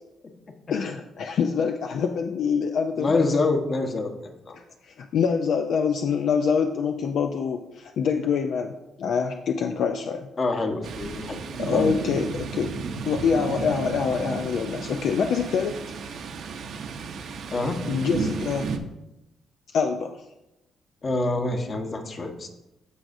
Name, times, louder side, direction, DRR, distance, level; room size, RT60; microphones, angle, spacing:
voice 1, 0.7-3.2 4.5-10.3 11.6-12.7 13.1-15.8 17.9-18.7 19.7-20.2, left 6 dB, 70° left, 5 dB, 0.5 m, -25 dB
voice 2, 3.0-4.6 10.4-11.4 11.7-11.9 17.5-17.8 21.0-22.5, left 3 dB, 40° left, 4 dB, 1.2 m, -26 dB
Thunder, 10.8-18.8, right 5 dB, 70° right, 0.8 m, -33 dB
14.0 x 4.8 x 2.7 m, 0.94 s
cardioid pair, 90°, 0 cm